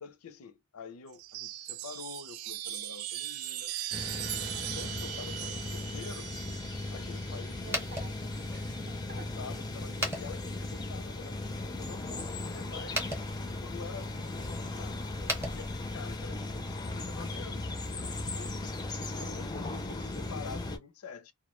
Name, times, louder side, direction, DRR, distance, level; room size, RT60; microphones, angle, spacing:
voice 1, 0.0-3.7 4.6-6.3 6.9-7.8 9.1-13.0 13.5-18.8 19.2-21.3, left 5 dB, 90° left, 0.5 m, -47 dB
Chime, 1.1-8.9 10.1-10.8, right 12 dB, 90° right, 0.3 m, -40 dB
sound 1, 3.9-20.8, left 2 dB, 20° left, 0.4 m, -37 dB
sound 2, 7.6-16.3, equal, 10° right, 0.7 m, -41 dB
voice 2, 7.6-9.4 19.1-19.9, right 4 dB, 45° right, 0.6 m, -52 dB
2.2 x 2.1 x 2.9 m
head